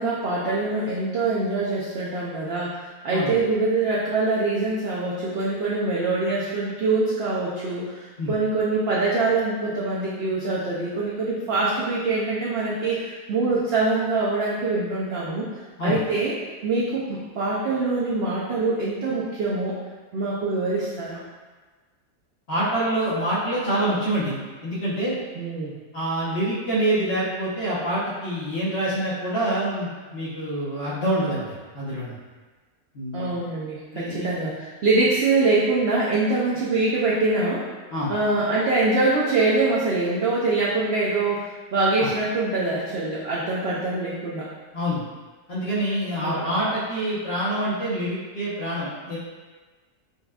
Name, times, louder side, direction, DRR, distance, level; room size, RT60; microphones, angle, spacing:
voice 1, 0.0-15.5 15.8-16.3 16.6-19.8 20.1-21.2 25.3-25.8 33.1-37.7 38.1-44.5 46.2-46.6, right 3 dB, 75° right, -6 dB, 0.5 m, -24 dB
voice 2, 22.5-25.2 25.9-32.2 32.9-33.3 33.9-34.3 37.9-38.1 42.0-42.1 44.7-45.0 45.5-49.2, right 1 dB, 50° left, -8 dB, 1.0 m, -26 dB
5.4 x 2.3 x 2.3 m, 1.3 s
omnidirectional pair, 1.6 m